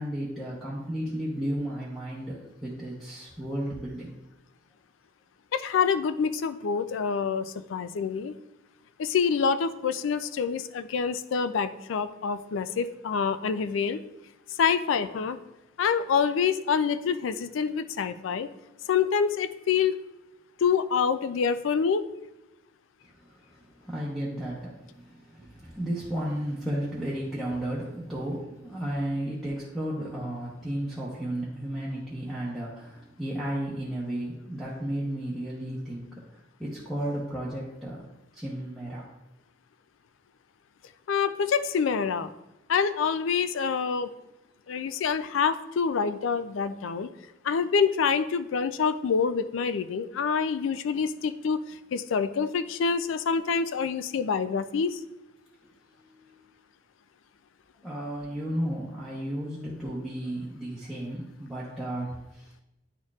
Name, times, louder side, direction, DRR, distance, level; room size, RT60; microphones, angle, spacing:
voice 1, 0.0-4.1 23.2-36.1 36.3-38.0 38.3-39.0 56.1-56.3 57.8-62.6, right 1 dB, ahead, -9 dB, 0.9 m, -33 dB
voice 2, 5.5-8.3 9.0-14.0 14.6-15.4 15.8-18.5 18.9-20.0 20.6-22.1 41.1-42.3 42.7-44.1 44.7-47.1 47.4-51.6 51.9-55.0, left 6 dB, 75° left, 12 dB, 0.4 m, -26 dB
9.9 x 4.4 x 2.4 m, 0.93 s
head